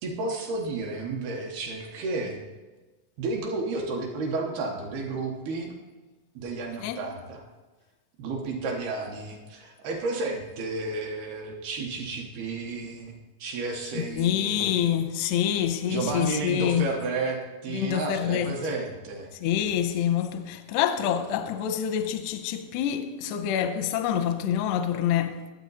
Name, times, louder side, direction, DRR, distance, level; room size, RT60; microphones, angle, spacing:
voice 1, 0.0-2.4 3.2-5.7 6.4-7.4 8.2-13.1 13.4-14.8 15.9-19.3, right 3 dB, 65° right, 2.7 m, -32 dB
voice 2, 13.9-16.9 17.7-18.5 19.3-25.4, left 10 dB, 85° left, 2.5 m, -26 dB
21.0 x 8.3 x 4.1 m
omnidirectional pair, 5.6 m